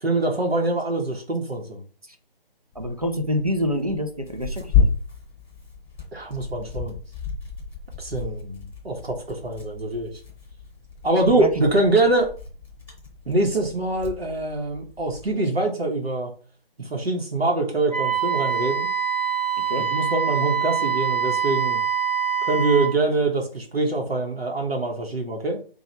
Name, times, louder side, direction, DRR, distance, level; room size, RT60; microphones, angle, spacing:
voice 1, 0.0-1.8 6.1-7.0 8.0-10.1 11.0-12.3 13.3-16.3 16.8-18.9 19.8-21.8 22.4-25.6, right 2 dB, 80° right, 1 dB, 0.9 m, -24 dB
Tearing, 2.7-15.3, left 6 dB, ahead, 0.8 m, -31 dB
voice 2, 2.8-4.7 11.3-11.7 19.7-19.9, equal, 40° right, 7 dB, 0.4 m, -26 dB
Wind instrument woodwind instrument, 17.9-23.0, right 8 dB, 30° left, 0.4 m, -24 dB
2.9 x 2.3 x 4.2 m, 0.40 s
figure-of-eight pair, 155°, 30 cm